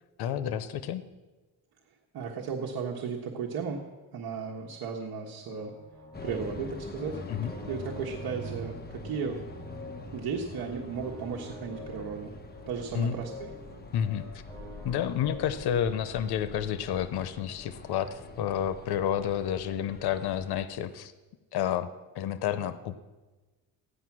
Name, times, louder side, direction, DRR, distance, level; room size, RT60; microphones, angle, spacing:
voice 1, 0.2-1.0 7.3-7.5 12.9-13.2 13.9-14.3 14.8-21.1 21.5-21.9 22.1-23.0, left 9 dB, 90° left, 12 dB, 0.8 m, -30 dB
voice 2, 2.1-3.8 4.1-5.7 6.2-7.2 7.7-9.4 10.1-12.3 12.7-13.5, right 6 dB, 70° right, -1 dB, 1.5 m, -35 dB
sound 1, 5.5-19.5, left 1 dB, 10° left, 4.7 m, -48 dB
sound 2, 6.1-20.6, left 1 dB, 25° left, 1.2 m, -44 dB
15.5 x 10.0 x 6.1 m, 1.2 s
cardioid pair, 115°, 37 cm